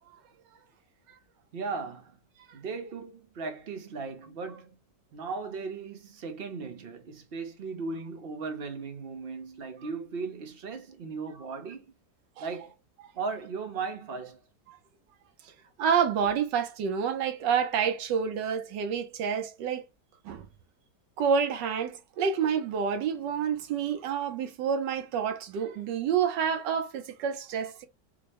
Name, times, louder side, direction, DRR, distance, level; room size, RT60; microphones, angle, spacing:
voice 1, 1.5-2.2 2.5-4.8 5.1-11.9 12.4-12.7 13.1-14.4, right 4 dB, 60° right, 0.6 m, -37 dB
voice 2, 15.8-19.8 20.2-20.5 21.2-27.8, right 7 dB, 85° right, 1.4 m, -28 dB
4.9 x 2.1 x 2.9 m
omnidirectional pair, 1.9 m